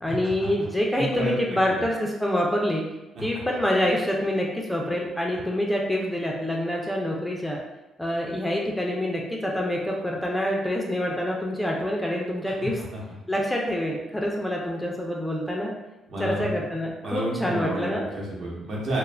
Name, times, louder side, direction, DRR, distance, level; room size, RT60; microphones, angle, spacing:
voice 1, 0.0-2.9 3.2-7.6 8.0-12.8 13.3-15.7 16.2-18.1, left 1 dB, 5° left, -1 dB, 0.4 m, -26 dB
voice 2, 1.0-1.4 1.7-1.8 3.1-3.2 12.6-13.0 16.1-16.6 17.0-19.0, right 1 dB, 60° right, -4 dB, 0.9 m, -30 dB
2.3 x 2.0 x 3.2 m, 0.98 s
cardioid pair, 90°, 0 cm